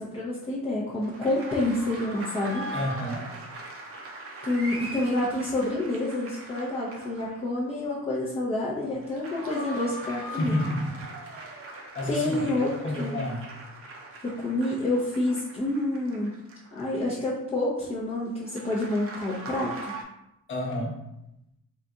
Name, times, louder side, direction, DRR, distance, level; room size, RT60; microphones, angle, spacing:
voice 1, 0.0-2.7 4.4-10.6 12.1-12.7 13.0-13.2 14.2-16.3 16.7-20.0, left 1 dB, 20° left, -6 dB, 0.6 m, -28 dB
sound 1, 1.0-7.6 8.9-17.3 18.5-20.0, right 1 dB, 45° right, 0.6 m, -40 dB
voice 2, 2.7-3.3 10.4-11.0 11.9-13.4 20.5-21.0, left 1 dB, 35° left, -3 dB, 1.0 m, -30 dB
3.9 x 2.4 x 3.8 m, 0.86 s
cardioid pair, 165°, 33 cm